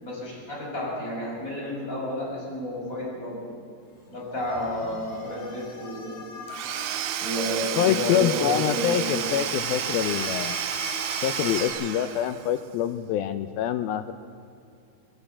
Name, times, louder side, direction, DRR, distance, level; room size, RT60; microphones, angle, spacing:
voice 1, 0.0-3.4 4.1-6.2 7.2-9.2, left 1 dB, 20° left, -5 dB, 6.9 m, -31 dB
sound 1, 4.3-11.7, left 2 dB, 40° left, 6.5 m, -40 dB
Domestic sounds home sounds / Tools, 6.5-12.6, right 10 dB, 90° right, 3.2 m, -31 dB
voice 2, 7.8-10.6 11.2-14.1, left 10 dB, 80° left, 9 dB, 2.2 m, -26 dB
21.0 x 17.5 x 8.4 m, 2.4 s
omnidirectional pair, 5.0 m